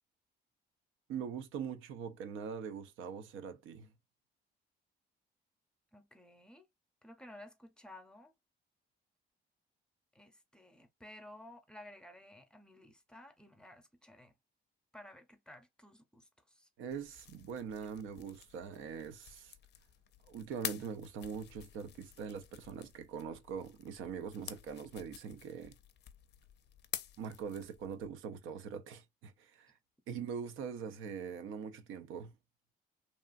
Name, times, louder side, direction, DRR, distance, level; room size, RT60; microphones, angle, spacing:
voice 1, 1.1-3.9 16.8-19.5 20.3-25.8 27.2-29.7 30.1-32.3, right 7 dB, 85° right, 0.5 m, -42 dB
voice 2, 5.9-6.7 7.0-8.3 10.1-14.3 14.9-16.7, left 1 dB, 5° left, 0.7 m, -55 dB
sound 1, 16.9-28.1, left 10 dB, 60° left, 0.4 m, -49 dB
3.0 x 2.3 x 2.4 m
cardioid pair, 90°, 20 cm